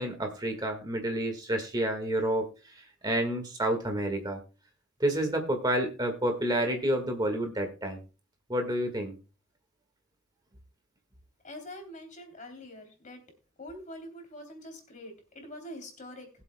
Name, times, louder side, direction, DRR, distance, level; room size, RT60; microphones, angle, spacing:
voice 1, 0.0-4.4 5.0-8.0 8.5-9.2, right 1 dB, 20° right, 5 dB, 1.6 m, -29 dB
voice 2, 11.4-13.2 13.6-16.3, left 1 dB, 35° left, 5 dB, 3.1 m, -44 dB
20.5 x 7.8 x 2.2 m, 0.33 s
head